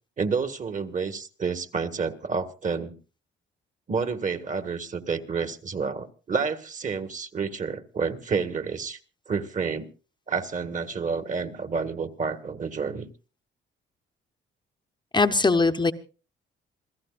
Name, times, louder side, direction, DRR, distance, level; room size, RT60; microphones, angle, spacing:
voice 1, 0.2-2.9 3.9-9.0 9.3-9.9 10.3-13.1, right 5 dB, 40° right, 10 dB, 1.7 m, -29 dB
voice 2, 15.1-15.9, left 3 dB, 20° left, 7 dB, 0.9 m, -20 dB
27.5 x 15.5 x 2.5 m, 0.35 s
cardioid pair, 90°, 20 cm